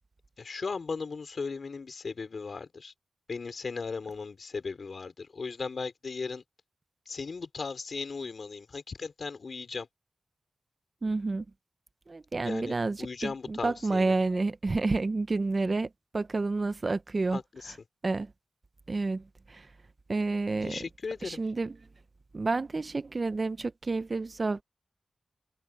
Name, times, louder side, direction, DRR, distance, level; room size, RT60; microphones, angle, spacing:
voice 1, 0.4-2.9 3.3-6.4 7.1-9.9 12.4-14.1 17.3-17.7 20.6-21.4, left 4 dB, 60° left, 3.8 m, -37 dB
voice 2, 11.0-11.4 12.1-17.4 17.7-17.8 18.0-18.3 18.9-19.7 20.1-20.8 21.2-21.8 22.3-24.6, right 3 dB, 40° right, 0.7 m, -30 dB
wide cardioid pair, 115°, 0 cm